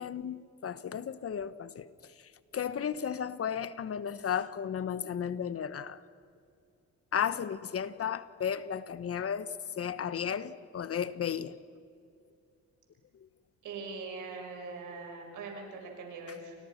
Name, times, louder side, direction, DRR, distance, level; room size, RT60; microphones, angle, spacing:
voice 1, 0.0-1.9 2.5-6.0 7.1-11.5, left 8 dB, 50° left, 1.3 m, -34 dB
voice 2, 13.6-16.6, right 4 dB, 85° right, 6.0 m, -42 dB
30.0 x 25.0 x 6.0 m
cardioid pair, 90°, 30 cm